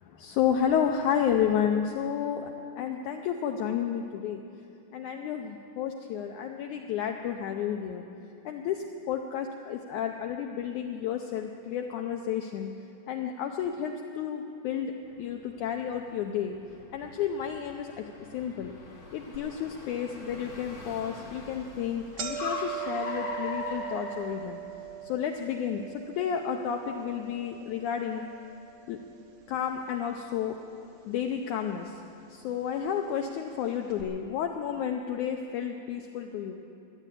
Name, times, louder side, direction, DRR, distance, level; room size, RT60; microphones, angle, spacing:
voice 1, 0.0-4.4 4.9-8.0 8.4-12.7 13.1-16.6 16.9-18.7 19.1-24.6 25.0-28.3 28.9-29.0 29.5-30.6 31.1-32.0 32.3-36.6, left 8 dB, 90° left, 4 dB, 1.7 m, -31 dB
Car, 15.1-25.0, left 3 dB, 55° left, 1.0 m, -42 dB
sound 1, 19.3-19.4 20.0-20.1 20.9-21.1 21.4-21.5 21.8-30.0 30.3-31.0 31.8-31.9 32.9-33.0 33.2-33.3 33.9-34.0, right 10 dB, 65° right, 1.4 m, -41 dB
13.0 x 9.8 x 9.0 m, 2.7 s
omnidirectional pair, 4.2 m